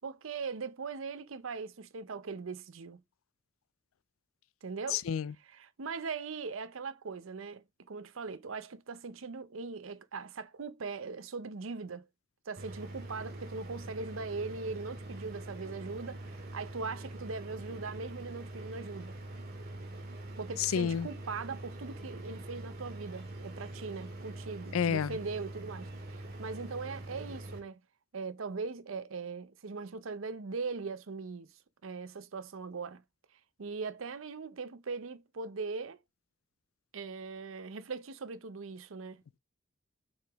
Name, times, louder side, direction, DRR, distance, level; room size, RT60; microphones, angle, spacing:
voice 1, 0.0-3.0 4.6-5.0 5.5-12.1 12.5-19.2 20.4-27.8 28.1-31.5 31.8-33.0 33.6-36.0 36.9-39.2, right 4 dB, 70° right, 0.6 m, -40 dB
voice 2, 4.9-5.3 20.6-21.1 24.7-25.2, left 7 dB, 85° left, 0.4 m, -30 dB
sound 1, 12.6-27.6, right 1 dB, 50° right, 2.0 m, -44 dB
6.4 x 4.9 x 3.5 m
head